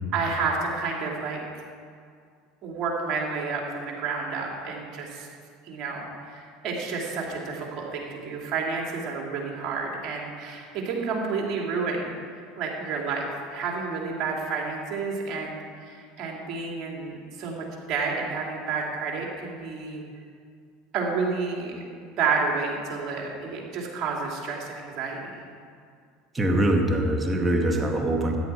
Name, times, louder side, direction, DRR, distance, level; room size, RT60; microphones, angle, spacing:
voice 1, 0.1-1.6 2.6-5.3 5.6-20.0 20.9-25.4, right 4 dB, 50° right, -1 dB, 2.9 m, -30 dB
voice 2, 26.3-28.4, right 1 dB, 20° right, 2 dB, 2.1 m, -23 dB
13.5 x 10.5 x 4.8 m, 2.2 s
hypercardioid pair, 80°, 0 cm